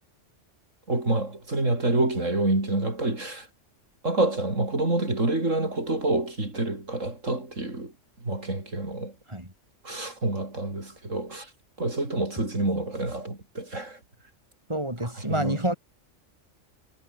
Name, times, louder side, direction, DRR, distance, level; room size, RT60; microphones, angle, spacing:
voice 1, 0.9-3.5 4.0-7.9 8.2-9.2 9.8-11.5 11.8-14.0 15.0-15.6, right 2 dB, 90° right, 5.8 m, -27 dB
voice 2, 14.7-15.7, right 1 dB, 20° right, 6.5 m, -28 dB
omnidirectional pair, 1.3 m